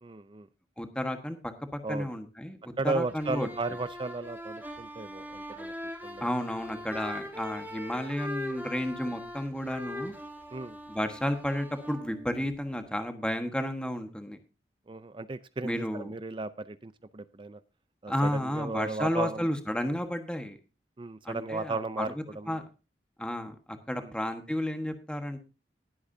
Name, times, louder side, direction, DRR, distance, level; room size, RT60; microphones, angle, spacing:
voice 1, 0.0-0.5 1.8-2.1 2.8-5.7 6.0-6.3 10.5-10.8 14.9-17.6 18.0-19.5 21.0-22.6 24.0-24.1, right 3 dB, 30° right, 14 dB, 0.5 m, -35 dB
voice 2, 0.8-1.4 1.7-3.5 6.2-10.1 10.9-14.4 15.6-16.1 18.1-20.6 21.2-22.6 23.2-25.4, left 1 dB, 5° left, 6 dB, 1.3 m, -32 dB
sound 1, 3.1-12.9, left 1 dB, 10° right, 1.6 m, -41 dB
20.0 x 8.4 x 2.7 m, 0.30 s
head